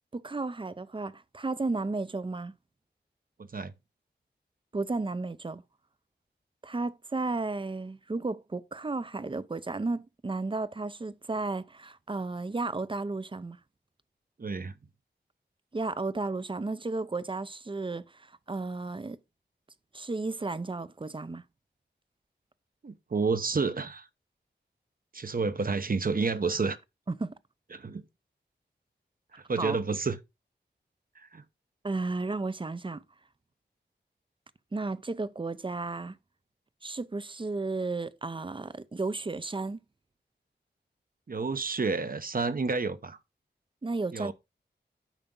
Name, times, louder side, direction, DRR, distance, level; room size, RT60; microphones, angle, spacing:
voice 1, 0.1-2.5 4.7-5.6 6.6-13.6 15.7-19.2 19.9-21.4 27.1-27.3 29.6-29.8 31.8-33.0 34.7-36.2 36.8-39.8 43.8-44.3, right 3 dB, 25° right, 0.6 m, -33 dB
voice 2, 3.4-3.7 14.4-14.7 22.8-24.1 25.1-26.8 27.7-28.0 29.3-30.2 31.2-31.4 41.3-43.2 44.1-44.3, right 4 dB, 50° right, 0.9 m, -30 dB
9.0 x 5.8 x 3.8 m
wide cardioid pair, 70°, 19 cm